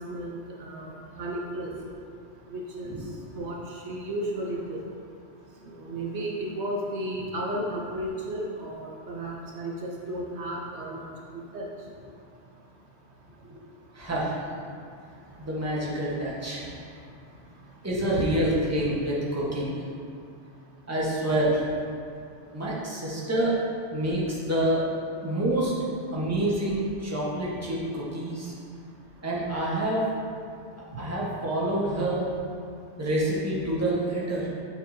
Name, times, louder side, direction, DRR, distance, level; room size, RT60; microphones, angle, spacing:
voice 1, 0.0-1.7 2.5-2.9 3.3-4.8 5.7-11.7 18.2-18.3, right 1 dB, 70° right, -2 dB, 1.1 m, -34 dB
voice 2, 13.9-14.4 15.4-16.7 17.8-19.8 20.9-21.7 22.5-23.5 23.9-24.8 25.2-25.7 26.1-28.5 29.2-30.0 31.0-32.3 33.0-34.5, right 1 dB, 15° right, -6 dB, 1.2 m, -27 dB
7.6 x 6.9 x 2.8 m, 2.4 s
omnidirectional pair, 1.2 m